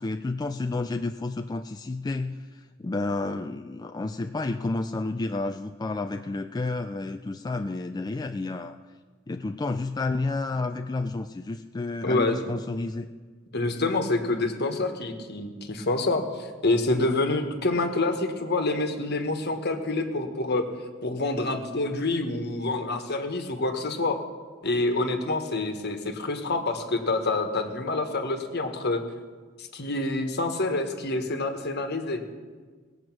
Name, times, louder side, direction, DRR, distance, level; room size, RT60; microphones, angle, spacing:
voice 1, 0.0-8.8 9.3-13.1, left 3 dB, 20° left, 6 dB, 0.3 m, -30 dB
voice 2, 12.0-12.5 13.5-20.7 21.0-24.2 24.6-29.0 29.6-32.2, left 2 dB, 55° left, 6 dB, 1.4 m, -27 dB
19.0 x 7.9 x 6.1 m, 1.5 s
head